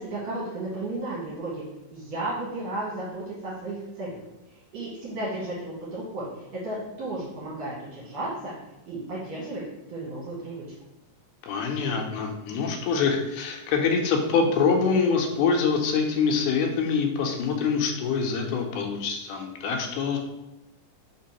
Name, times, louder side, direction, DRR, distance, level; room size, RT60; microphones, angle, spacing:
voice 1, 0.0-1.6 1.9-4.2 4.5-8.5 8.9-9.6 9.9-10.6, right 2 dB, 65° right, -7 dB, 1.9 m, -34 dB
voice 2, 11.5-20.2, left 5 dB, 85° left, 2 dB, 2.1 m, -25 dB
4.5 x 3.4 x 2.9 m, 0.93 s
omnidirectional pair, 3.6 m